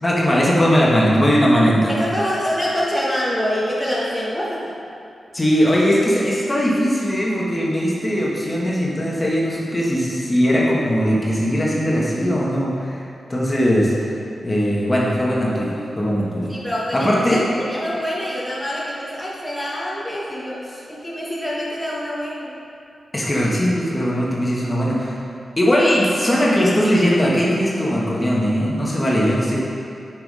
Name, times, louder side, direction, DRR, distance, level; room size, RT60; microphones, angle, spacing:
voice 1, 0.0-1.9 5.3-13.0 13.3-13.9 14.4-16.5 16.9-17.4 23.1-25.1 25.6-29.6, equal, 20° left, -4 dB, 1.4 m, -19 dB
voice 2, 1.9-4.7 13.9-14.1 16.5-22.5, equal, ahead, -7 dB, 1.3 m, -26 dB
6.1 x 5.9 x 4.8 m, 2.6 s
cardioid pair, 75°, 0 cm